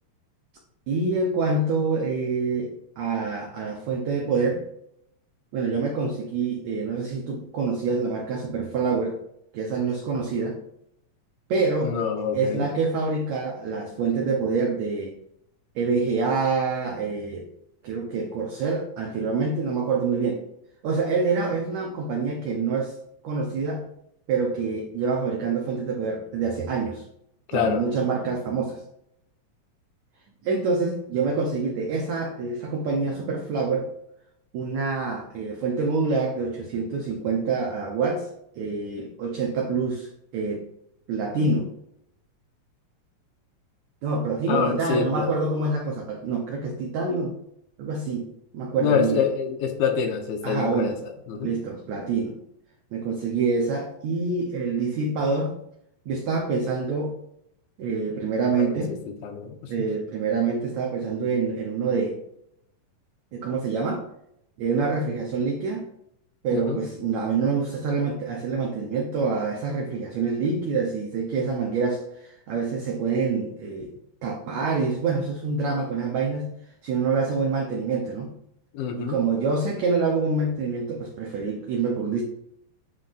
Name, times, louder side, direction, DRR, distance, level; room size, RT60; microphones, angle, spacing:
voice 1, 0.9-4.6 5.5-9.2 9.5-10.6 11.5-12.0 12.3-15.1 15.8-17.5 17.8-20.4 20.8-23.0 23.2-23.8 24.3-27.0 27.5-28.8 30.4-33.9 34.5-38.3 38.6-40.6 41.1-41.7 44.0-47.3 47.8-48.3 48.5-49.2 50.4-51.0 51.4-52.4 52.9-55.5 56.1-57.1 57.8-58.9 59.7-62.2 63.3-64.0 64.6-65.9 66.4-73.9 74.2-76.5 76.8-78.3 79.0-82.2, right 4 dB, 70° right, 0 dB, 1.8 m, -26 dB
voice 2, 11.8-12.7 27.5-27.8 44.5-45.3 48.8-50.9 51.3-51.5 58.5-58.8 59.2-59.6 66.5-66.8 78.7-79.2, left 7 dB, 90° left, 4 dB, 2.7 m, -26 dB
11.0 x 4.1 x 2.5 m, 0.75 s
omnidirectional pair, 4.0 m